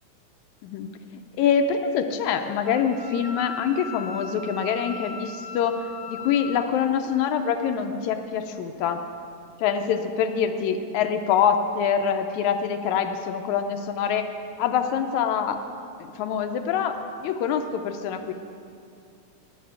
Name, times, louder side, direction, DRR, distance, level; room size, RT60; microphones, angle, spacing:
voice 1, 1.4-9.0 9.6-14.2 14.6-15.6 16.0-17.0 17.2-18.3, left 7 dB, 80° left, 7 dB, 1.9 m, -25 dB
Wind instrument woodwind instrument, 2.6-6.7, left 3 dB, 65° right, 2.6 m, -38 dB
13.0 x 5.8 x 8.6 m, 2.5 s
omnidirectional pair, 3.5 m